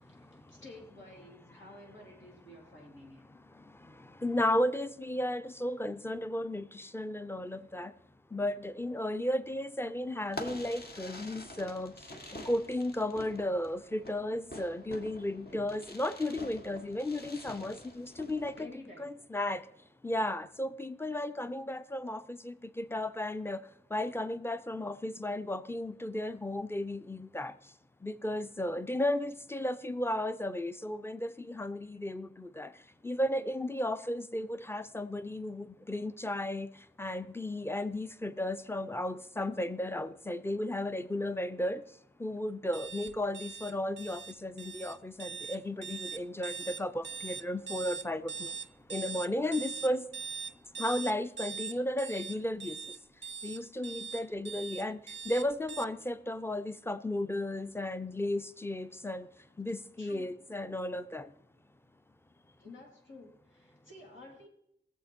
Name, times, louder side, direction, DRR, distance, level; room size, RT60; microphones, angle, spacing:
voice 1, 0.0-3.3 17.3-17.4 18.6-19.2 60.0-60.3 62.6-64.5, left 2 dB, 80° left, 3.6 m, -52 dB
voice 2, 4.2-7.9 8.3-11.9 12.5-18.7 19.0-19.6 20.0-23.6 23.9-27.5 28.0-32.7 33.0-36.7 37.0-41.8 42.2-48.5 48.9-50.0 50.8-52.8 53.4-55.0 55.3-59.3 59.6-61.3, left 1 dB, 10° left, 0.6 m, -34 dB
Fireworks, 10.3-18.6, left 1 dB, 55° left, 1.6 m, -47 dB
sound 1, 42.7-55.8, right 6 dB, 75° right, 0.4 m, -41 dB
20.0 x 7.4 x 4.4 m
wide cardioid pair, 75°, 19 cm